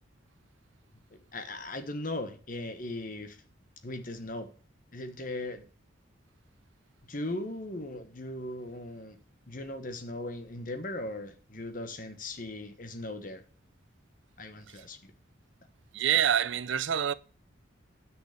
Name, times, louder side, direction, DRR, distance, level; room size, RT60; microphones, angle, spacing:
voice 1, 1.1-3.4 3.8-4.5 4.9-5.6 7.1-9.2 9.5-13.4 14.4-15.1, left 2 dB, 45° left, 1.3 m, -38 dB
voice 2, 15.9-17.1, right 9 dB, 70° right, 0.5 m, -27 dB
10.0 x 6.2 x 6.7 m
head